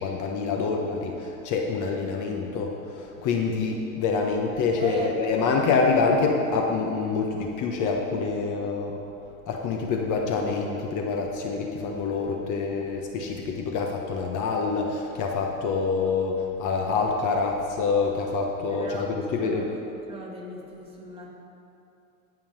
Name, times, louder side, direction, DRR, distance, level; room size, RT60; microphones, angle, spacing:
voice 1, 0.0-9.0 9.5-18.9 19.3-19.6, left 4 dB, 50° left, 1 dB, 1.3 m, -26 dB
voice 2, 4.8-5.8 18.6-19.1 19.4-19.8 20.1-21.3, right 2 dB, 15° right, -4 dB, 2.6 m, -37 dB
16.5 x 5.8 x 5.8 m, 2.8 s
supercardioid pair, 110°, 40 cm